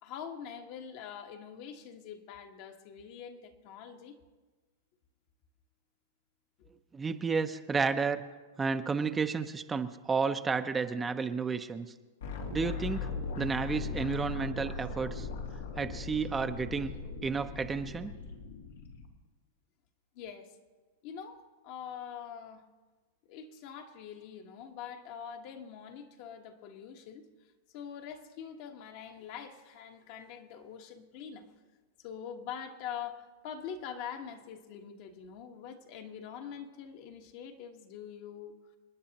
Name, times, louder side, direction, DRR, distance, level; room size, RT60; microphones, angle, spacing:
voice 1, 0.0-4.2 20.1-20.6 21.0-22.6 23.3-27.3 27.7-31.5 32.0-38.6, left 8 dB, 55° left, 4 dB, 1.3 m, -44 dB
voice 2, 6.9-8.2 8.6-11.9 12.5-13.1 13.4-15.3 15.8-16.9 17.2-18.1, right 5 dB, 15° right, 7 dB, 0.6 m, -31 dB
sound 1, 12.2-19.0, left 4 dB, 85° left, 2.0 m, -39 dB
28.5 x 9.5 x 2.9 m, 1.3 s
hypercardioid pair, 130°, 0 cm